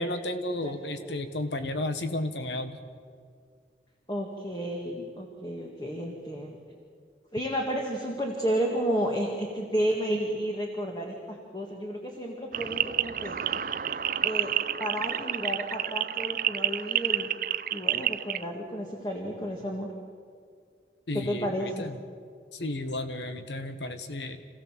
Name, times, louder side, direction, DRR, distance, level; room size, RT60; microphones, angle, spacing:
voice 1, 0.0-2.8 21.1-22.0 22.5-24.4, left 1 dB, 90° left, 9 dB, 1.5 m, -33 dB
voice 2, 0.6-1.2 4.1-6.6 7.3-13.4 14.2-14.5 14.8-17.3 17.7-19.9 21.1-21.9, equal, 25° left, 0 dB, 1.9 m, -32 dB
sound 1, 12.5-18.4, right 11 dB, 50° right, 0.5 m, -29 dB
27.0 x 15.5 x 7.5 m, 2.1 s
head